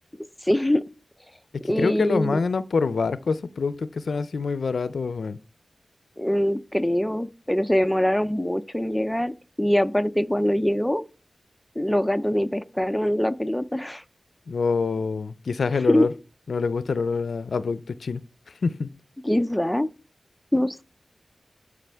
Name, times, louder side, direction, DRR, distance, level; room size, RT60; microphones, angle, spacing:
voice 1, 0.4-0.8 1.7-2.4 6.2-11.0 11.8-14.0 15.9-16.1 19.2-19.9 20.5-20.8, equal, 5° left, 0.4 m, -23 dB
voice 2, 1.5-5.4 14.5-16.1 16.5-18.9, left 4 dB, 85° left, 0.4 m, -26 dB
12.0 x 5.1 x 3.4 m
wide cardioid pair, 100°, 0 cm